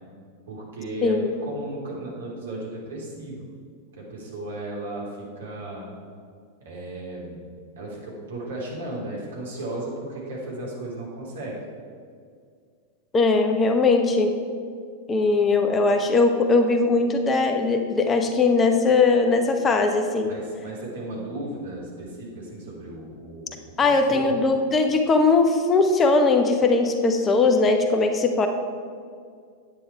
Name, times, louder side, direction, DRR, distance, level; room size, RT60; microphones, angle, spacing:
voice 1, 0.5-3.5 4.0-5.9 6.6-7.4 7.8-11.6 20.3-24.2, right 1 dB, 65° right, -3 dB, 3.1 m, -35 dB
voice 2, 13.1-14.3 15.1-20.3 23.8-28.5, left 3 dB, 20° left, 5 dB, 0.9 m, -20 dB
9.9 x 8.7 x 4.7 m, 2.2 s
figure-of-eight pair, 90°, 0 cm